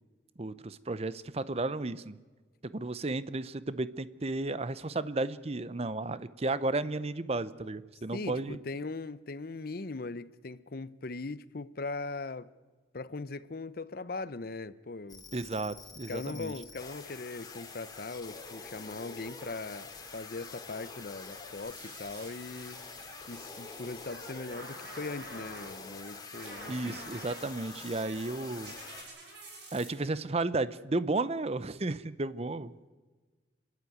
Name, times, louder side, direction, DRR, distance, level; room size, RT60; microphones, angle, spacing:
voice 1, 0.4-2.2 2.6-8.6 15.3-16.5 26.7-28.7 29.7-32.9, right 2 dB, 35° right, 0.7 m, -33 dB
voice 2, 8.1-12.5 12.9-15.2 16.1-22.8 23.3-27.0, left 3 dB, 55° left, 0.7 m, -40 dB
sound 1, 15.1-29.0, left 4 dB, 20° left, 2.3 m, -46 dB
sound 2, 21.5-29.9, right 2 dB, 70° right, 6.3 m, -50 dB
28.0 x 11.5 x 9.4 m
head